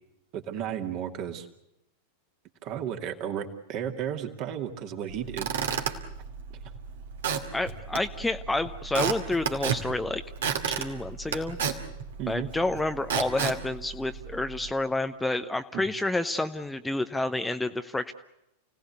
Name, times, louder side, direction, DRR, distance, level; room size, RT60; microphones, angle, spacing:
voice 1, 0.3-1.5 2.6-5.8 12.2-12.5 15.7-15.8, right 9 dB, 40° right, 4 dB, 2.5 m, -34 dB
Squeak / Wood, 5.1-14.7, right 7 dB, 60° right, 2.4 m, -33 dB
voice 2, 7.5-10.2 10.7-11.6 12.3-18.1, left 2 dB, 5° left, 8 dB, 0.9 m, -29 dB
29.5 x 18.0 x 8.2 m, 0.86 s
figure-of-eight pair, 90°, 0 cm